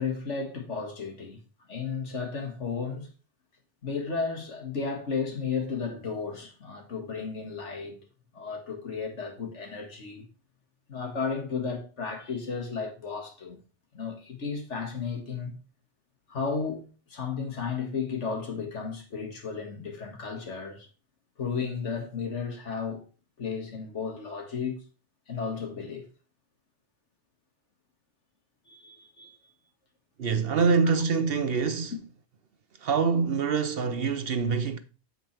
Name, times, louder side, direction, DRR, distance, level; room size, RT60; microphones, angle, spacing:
voice 1, 0.0-1.4 1.7-3.1 3.8-8.0 8.3-10.3 10.9-13.6 13.9-15.5 16.3-20.9 21.4-23.0 23.4-24.8 25.3-26.1 28.7-29.4 31.9-32.0, left 5 dB, 80° left, 2.2 m, -33 dB
voice 2, 30.2-31.9 32.8-34.8, right 5 dB, 60° right, 0.9 m, -25 dB
8.8 x 7.4 x 3.3 m
omnidirectional pair, 1.2 m